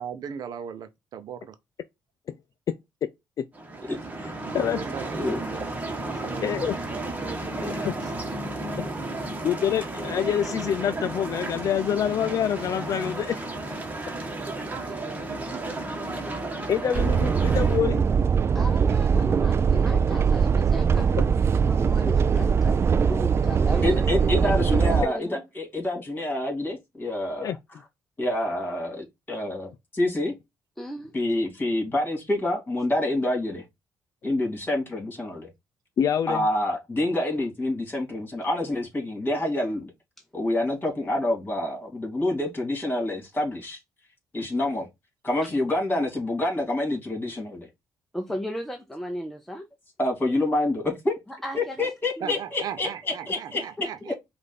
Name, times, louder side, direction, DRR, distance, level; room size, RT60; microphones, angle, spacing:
voice 1, 0.0-1.6 4.4-5.7 6.0-8.1 14.9-15.0 15.3-16.1 19.6-19.7 52.2-54.2, right 8 dB, 65° right, 0.7 m, -39 dB
sound 1, 3.5-17.8, right 2 dB, 20° right, 1.3 m, -33 dB
voice 2, 4.2-4.8 6.4-6.7 7.6-8.0 9.4-13.4 16.7-18.1 27.4-27.6 36.0-36.5 44.4-44.5, left 9 dB, 55° left, 0.4 m, -26 dB
sound 2, 16.9-25.0, right 6 dB, 40° right, 0.3 m, -21 dB
voice 3, 18.5-21.3 21.7-24.5 24.8-25.4 30.8-31.1 48.1-49.7 51.3-51.9 52.2-52.3 53.3-53.4 53.8-53.9, equal, 5° left, 0.8 m, -35 dB
voice 4, 23.8-27.5 28.2-30.3 31.1-33.6 34.2-35.5 36.3-39.9 40.3-43.8 44.3-44.9 45.2-47.7 50.0-51.2 51.5-52.9 53.3-53.6 54.1-54.2, left 1 dB, 25° left, 2.7 m, -27 dB
5.1 x 2.6 x 4.0 m
supercardioid pair, 75°, 7 cm